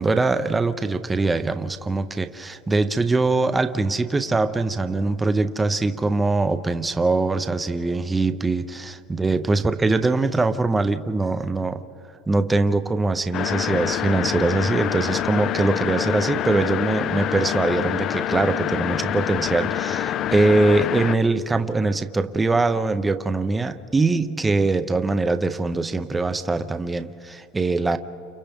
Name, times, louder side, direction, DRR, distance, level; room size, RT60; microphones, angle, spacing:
voice 1, 0.0-11.8 12.3-28.0, right 3 dB, 10° right, 9 dB, 0.6 m, -22 dB
sound 1, 13.3-21.2, left 11 dB, 40° left, 0.4 m, -26 dB
30.0 x 29.0 x 3.5 m, 2.9 s
supercardioid pair, 140°, 0 cm